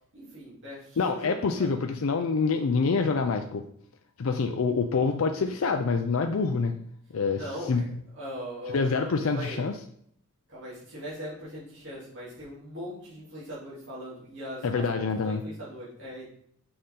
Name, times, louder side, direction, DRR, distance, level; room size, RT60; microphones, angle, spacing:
voice 1, 0.1-1.7 7.3-7.8 8.1-9.7 10.5-16.3, equal, 55° right, -9 dB, 3.2 m, -40 dB
voice 2, 1.0-3.6 4.2-6.7 7.1-7.4 7.7-7.8 8.7-9.8 14.6-15.4, left 4 dB, 65° left, 6 dB, 0.5 m, -26 dB
6.5 x 5.6 x 3.8 m, 0.66 s
head